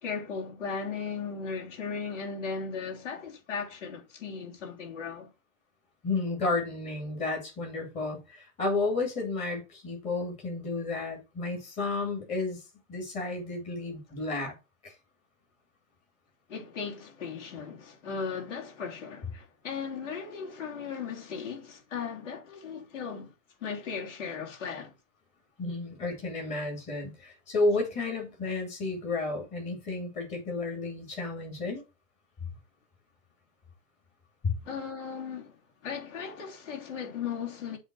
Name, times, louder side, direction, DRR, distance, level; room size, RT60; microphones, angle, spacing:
voice 1, 0.0-5.3 16.5-23.3 23.6-24.9 34.6-37.8, left 5 dB, 60° left, 3.2 m, -37 dB
voice 2, 6.0-12.6 12.9-14.6 14.8-14.9 25.6-31.8 34.4-34.5, left 3 dB, 15° left, 2.4 m, -32 dB
7.9 x 3.6 x 6.1 m
hypercardioid pair, 165°, 41 cm